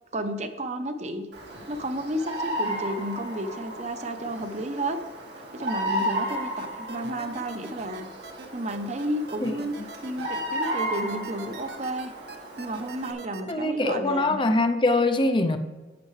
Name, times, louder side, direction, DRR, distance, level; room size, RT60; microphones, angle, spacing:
voice 1, 0.1-1.3 1.7-5.0 5.5-8.1 8.5-9.7 10.0-12.1 12.6-14.4, right 1 dB, 40° right, 0.7 m, -32 dB
Bird vocalization bird call bird song, 1.3-13.1, right 1 dB, 90° right, 2.0 m, -34 dB
sound 1, 6.0-13.5, right 4 dB, 65° right, 0.9 m, -43 dB
voice 2, 13.5-15.6, left 2 dB, 30° left, 0.5 m, -23 dB
11.0 x 8.2 x 3.2 m
head